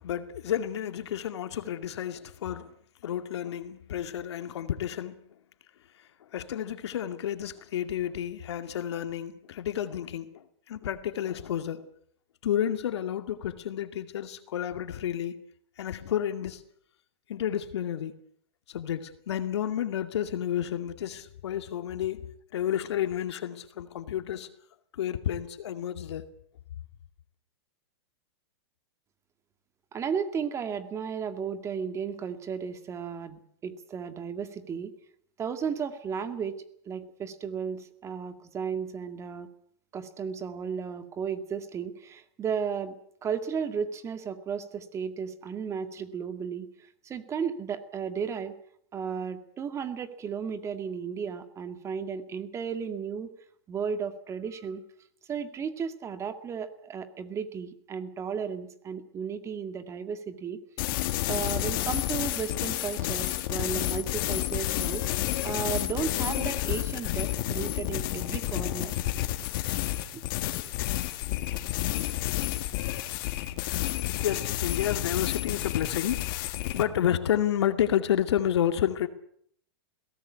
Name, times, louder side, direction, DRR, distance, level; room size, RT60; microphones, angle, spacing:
voice 1, 0.0-2.7 3.0-5.3 6.3-11.8 12.4-15.4 15.8-16.6 17.3-18.2 18.7-24.5 24.9-26.3 74.2-79.1, left 10 dB, 80° left, 2.3 m, -30 dB
voice 2, 29.9-34.9 35.4-39.5 39.9-48.6 48.9-53.3 53.7-54.8 55.3-60.6 61.2-68.9 70.1-70.2, right 6 dB, 20° right, 2.0 m, -34 dB
sound 1, 60.8-76.9, left 15 dB, 50° left, 1.8 m, -30 dB
21.5 x 17.5 x 8.4 m
supercardioid pair, 145°, 14 cm